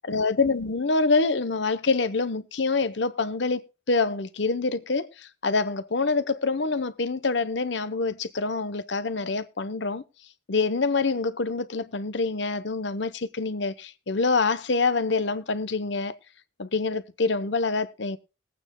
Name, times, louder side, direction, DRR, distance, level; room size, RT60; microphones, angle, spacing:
voice 1, 0.0-3.6 3.9-10.0 10.5-16.2 16.6-18.2, left 3 dB, 70° left, 0.8 m, -26 dB
20.5 x 8.8 x 2.2 m
head